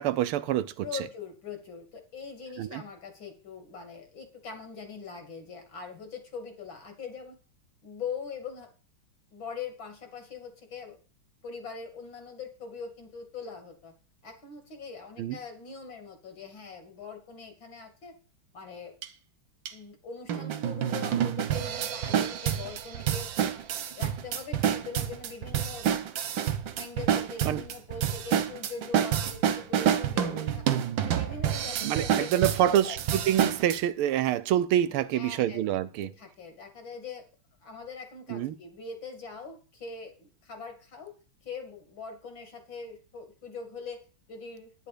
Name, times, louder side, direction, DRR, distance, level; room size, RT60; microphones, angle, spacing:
voice 1, 0.0-0.9 2.6-2.8 15.2-15.4 27.4-27.6 31.8-36.1 38.3-38.5, right 12 dB, 80° right, 1.6 m, -26 dB
voice 2, 0.8-7.4 7.8-8.7 9.3-11.0 11.4-13.9 14.2-18.2 18.5-19.0 19.7-23.3 24.0-25.9 26.8-30.6 31.0-33.0 35.1-35.6 36.0-37.3 37.6-41.1 41.4-44.9, left 5 dB, 60° left, 3.4 m, -42 dB
sound 1, 19.0-19.1 19.7-19.8 20.3-33.8, right 9 dB, 65° right, 1.6 m, -28 dB
10.5 x 10.5 x 5.1 m
omnidirectional pair, 2.4 m